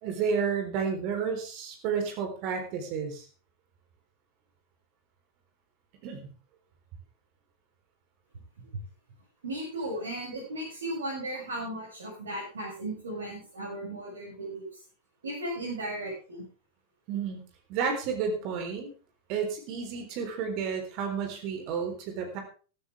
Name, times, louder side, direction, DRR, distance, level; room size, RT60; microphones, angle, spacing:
voice 1, 0.0-3.2 6.0-6.3 17.1-17.4 17.7-18.9 19.3-22.4, right 6 dB, 45° right, 5 dB, 3.9 m, -31 dB
voice 2, 9.4-14.7 15.2-16.4, right 1 dB, 65° right, -5 dB, 7.2 m, -36 dB
15.5 x 13.5 x 3.6 m, 0.36 s
figure-of-eight pair, 90°, 0 cm